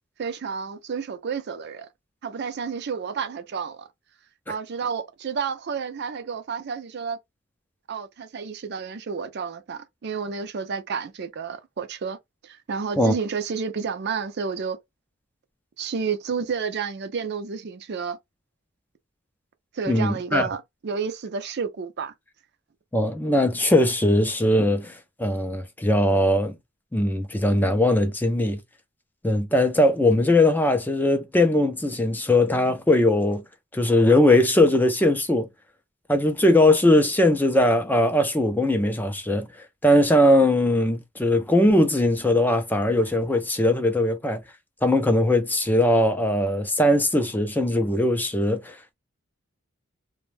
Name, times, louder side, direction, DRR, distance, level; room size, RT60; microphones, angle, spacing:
voice 1, 0.2-1.9 2.2-3.9 4.5-7.2 7.9-12.2 12.4-14.8 15.8-18.2 19.7-22.1, right 5 dB, 55° right, 0.5 m, -30 dB
voice 2, 19.9-20.5 22.9-26.6 26.9-28.6 29.2-33.4 33.7-35.5 36.1-39.5 39.8-44.4 44.8-48.9, left 1 dB, 10° left, 0.4 m, -20 dB
2.5 x 2.1 x 3.2 m
head